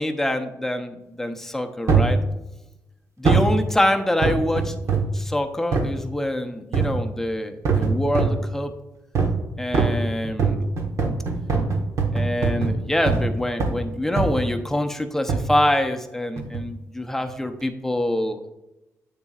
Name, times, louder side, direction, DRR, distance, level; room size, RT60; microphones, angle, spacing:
voice 1, 0.0-2.2 3.2-4.7 5.1-8.7 9.6-10.7 12.1-18.5, left 1 dB, 5° left, 5 dB, 0.7 m, -25 dB
sound 1, 1.9-2.2 3.2-3.6 4.2-5.2 5.7-5.9 6.7-7.1 7.6-8.4 9.1-9.4 9.7-13.3 13.6-13.8 14.2-14.6 15.3-15.5 16.4-16.7 17.3-17.4, right 4 dB, 60° right, 1.3 m, -22 dB
8.9 x 6.9 x 2.4 m, 0.95 s
cardioid pair, 115°, 6 cm